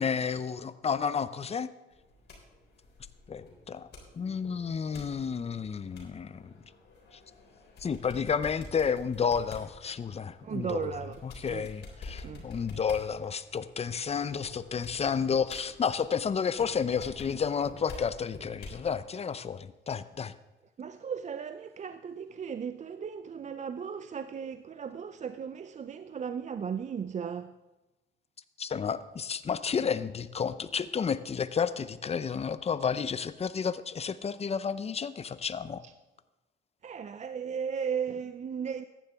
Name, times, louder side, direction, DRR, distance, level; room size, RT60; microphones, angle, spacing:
voice 1, 0.0-1.7 3.3-3.9 4.2-6.4 7.8-20.3 28.6-35.8, left 6 dB, 30° left, 0.6 m, -31 dB
sound 1, 1.9-18.9, left 3 dB, 60° left, 3.7 m, -49 dB
voice 2, 10.4-11.2 11.5-11.7 12.2-12.4 20.8-27.5 35.8-35.9 36.8-38.8, right 7 dB, 35° right, 0.5 m, -36 dB
14.5 x 10.5 x 3.5 m
cardioid pair, 90°, 20 cm